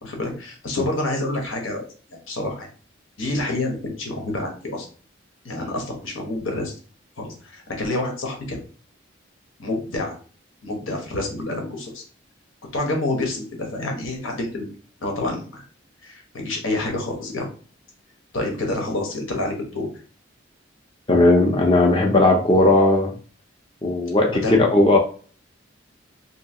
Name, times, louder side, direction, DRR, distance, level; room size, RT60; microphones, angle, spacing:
voice 1, 0.0-1.8 2.1-2.7 3.2-4.9 5.4-6.7 7.2-8.6 9.6-10.2 10.6-12.0 12.7-14.7 15.0-15.6 16.0-17.5 18.3-19.9 24.3-24.6, left 2 dB, 85° left, 2 dB, 1.1 m, -28 dB
voice 2, 21.1-23.1 23.8-25.0, left 2 dB, 25° left, 1 dB, 0.5 m, -17 dB
3.0 x 2.8 x 2.8 m, 0.39 s
head